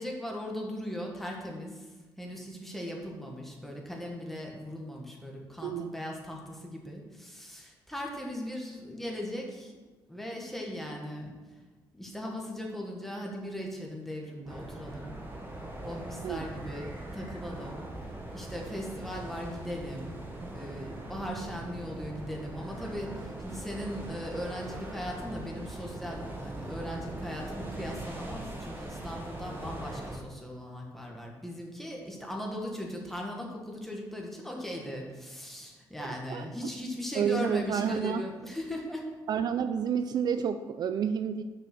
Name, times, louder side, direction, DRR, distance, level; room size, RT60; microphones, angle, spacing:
voice 1, 0.0-9.7 10.1-11.3 11.9-15.2 15.8-17.9 18.3-39.1, equal, 5° left, -1 dB, 1.7 m, -39 dB
voice 2, 5.6-5.9 16.2-16.5 36.0-36.7 37.1-38.2 39.3-41.4, right 7 dB, 60° right, 10 dB, 0.4 m, -30 dB
sound 1, 14.5-30.2, right 1 dB, 25° right, 1.5 m, -41 dB
6.6 x 5.9 x 6.1 m, 1.3 s
cardioid pair, 115°, 8 cm